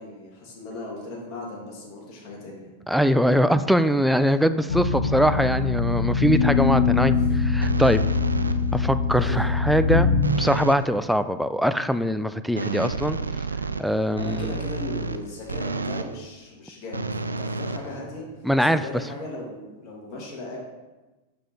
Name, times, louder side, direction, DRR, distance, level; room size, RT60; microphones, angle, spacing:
voice 1, 0.0-2.7 7.0-7.3 9.1-9.4 13.5-13.6 14.2-18.3 18.6-20.6, left 2 dB, 40° left, -3 dB, 1.8 m, -37 dB
voice 2, 2.9-8.0 8.7-10.1 10.4-13.2 13.8-14.5 18.4-18.8, equal, ahead, 11 dB, 0.3 m, -22 dB
sound 1, 4.7-10.2, left 5 dB, 80° left, 0.6 m, -23 dB
sound 2, 7.6-8.8 10.2-10.9 12.6-16.2 16.9-18.4, right 4 dB, 90° right, 0.3 m, -30 dB
6.0 x 4.8 x 4.1 m, 1.1 s
hypercardioid pair, 95°, 0 cm